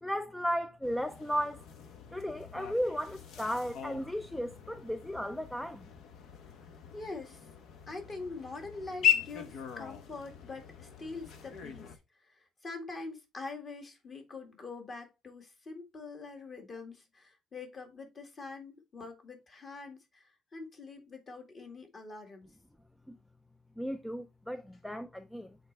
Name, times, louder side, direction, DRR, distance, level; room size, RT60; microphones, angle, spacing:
voice 1, 0.0-1.6 2.1-5.9 23.1-23.2 23.8-25.6, equal, 5° left, 0.4 m, -35 dB
sound 1, 0.8-12.0, left 9 dB, 65° left, 1.1 m, -38 dB
voice 2, 6.9-7.5 7.9-22.5, left 3 dB, 30° left, 1.9 m, -44 dB
8.0 x 4.1 x 3.3 m
cardioid pair, 145°, 0 cm